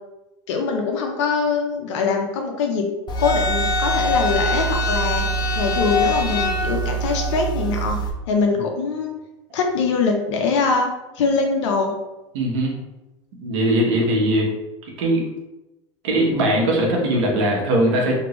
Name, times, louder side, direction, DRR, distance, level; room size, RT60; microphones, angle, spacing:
voice 1, 0.5-2.9 3.2-5.2 5.6-8.0 8.3-9.1 9.5-10.9 11.2-11.9, left 4 dB, 70° left, 2 dB, 0.5 m, -22 dB
sound 1, 3.1-8.1, equal, 30° left, 0.6 m, -23 dB
voice 2, 12.3-12.8 13.4-14.5 15.0-15.2 16.0-18.2, right 1 dB, 70° right, -1 dB, 1.0 m, -20 dB
2.9 x 2.6 x 3.0 m, 0.99 s
hypercardioid pair, 100°, 16 cm